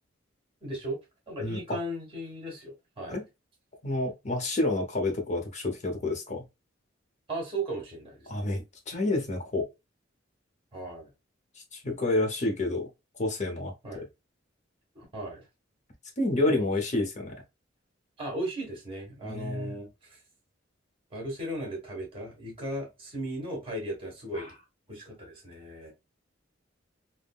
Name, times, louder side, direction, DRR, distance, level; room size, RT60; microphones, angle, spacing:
voice 1, 0.6-1.0 1.3-3.2 7.3-8.5 10.7-11.1 13.8-14.1 14.9-15.4 16.4-16.7 18.2-20.2 21.1-24.5 24.9-25.9, right 1 dB, 30° right, 1.5 m, -36 dB
voice 2, 1.4-1.8 3.1-3.2 3.8-6.5 8.3-9.7 11.7-12.9 13.2-14.0 16.2-17.3 19.2-19.8 24.3-24.4, left 2 dB, 40° left, 0.8 m, -29 dB
3.6 x 2.1 x 2.3 m
head